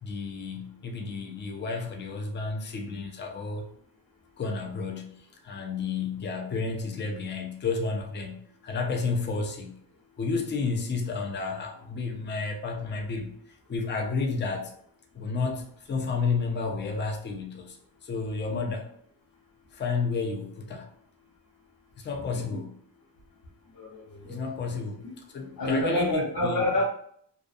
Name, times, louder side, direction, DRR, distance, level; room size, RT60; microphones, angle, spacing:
voice 1, 0.0-3.6 4.4-9.8 10.2-13.3 13.7-14.7 15.1-18.9 19.7-20.9 22.0-22.7 24.2-25.0 25.3-26.6, left 4 dB, 30° left, 2 dB, 0.3 m, -31 dB
voice 2, 23.7-24.7 25.6-26.8, left 1 dB, 60° left, -7 dB, 0.8 m, -28 dB
2.5 x 2.2 x 2.4 m, 0.65 s
wide cardioid pair, 145°, 43 cm